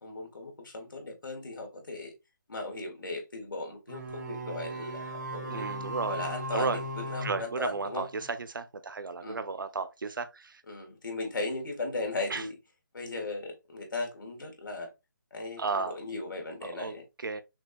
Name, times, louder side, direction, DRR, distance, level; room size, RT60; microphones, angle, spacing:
voice 1, 0.0-2.1 2.5-5.7 6.1-8.0 9.2-9.4 10.7-12.5 12.9-14.9 15.3-17.0, left 2 dB, 80° left, 2.3 m, -37 dB
sound 1, 3.9-8.3, right 1 dB, 60° right, 2.4 m, -38 dB
voice 2, 5.5-6.2 6.5-6.8 7.2-10.6 12.3-12.5 15.6-16.0 16.6-17.4, right 4 dB, 80° right, 0.8 m, -34 dB
5.9 x 2.9 x 2.4 m
hypercardioid pair, 180°, 11 cm